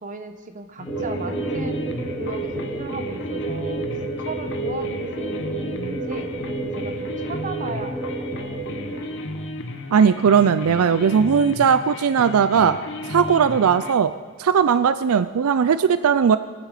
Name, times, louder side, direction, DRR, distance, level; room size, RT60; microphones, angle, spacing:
voice 1, 0.0-1.9 2.2-6.3 6.7-8.6, right 3 dB, 35° right, 7 dB, 1.0 m, -36 dB
sound 1, 0.8-13.9, left 2 dB, 60° left, 1.0 m, -34 dB
sound 2, 0.8-9.0, right 2 dB, 15° left, 5.9 m, -30 dB
voice 2, 9.9-12.8 13.1-14.1 14.4-16.4, right 7 dB, 75° right, 12 dB, 0.4 m, -18 dB
22.5 x 9.3 x 5.0 m, 1.5 s
head